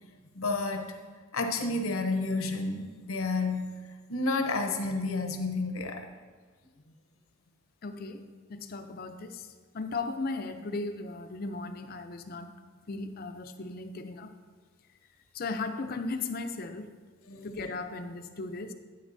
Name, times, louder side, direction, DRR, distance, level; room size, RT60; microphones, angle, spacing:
voice 1, 0.3-3.8 4.1-6.1 17.3-17.7, left 3 dB, 85° left, 5 dB, 0.8 m, -31 dB
voice 2, 7.8-9.5 9.7-12.5 12.9-14.3 15.3-16.9 17.6-18.7, left 3 dB, 45° left, 9 dB, 0.5 m, -36 dB
9.5 x 8.6 x 2.6 m, 1.5 s
head